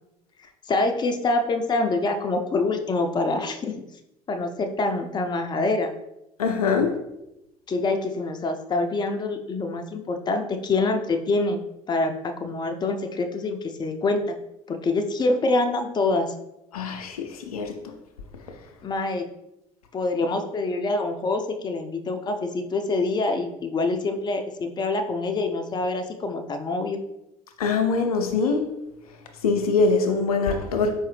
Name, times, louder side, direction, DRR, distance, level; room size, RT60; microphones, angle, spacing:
voice 1, 0.7-3.7 4.3-5.9 7.7-14.4 14.7-16.3 18.8-19.3 19.9-27.0, left 2 dB, 25° left, 5 dB, 0.5 m, -25 dB
voice 2, 6.4-6.9 16.7-17.7 27.6-28.6 29.4-30.9, left 4 dB, 80° left, 4 dB, 0.5 m, -23 dB
4.7 x 2.6 x 3.3 m, 0.89 s
figure-of-eight pair, 60°, 19 cm